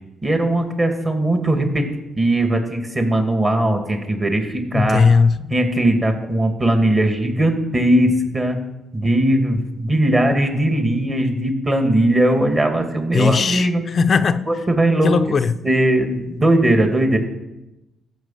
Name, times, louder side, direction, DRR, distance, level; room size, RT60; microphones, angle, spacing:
voice 1, 0.2-1.9 2.2-5.0 5.5-8.6 8.9-13.8 14.5-15.1 15.6-17.2, right 1 dB, 25° right, 2.3 m, -19 dB
voice 2, 4.7-5.4 13.1-14.5 15.0-15.5, left 5 dB, 45° left, 0.5 m, -17 dB
14.5 x 5.7 x 7.6 m
cardioid pair, 90°, 0 cm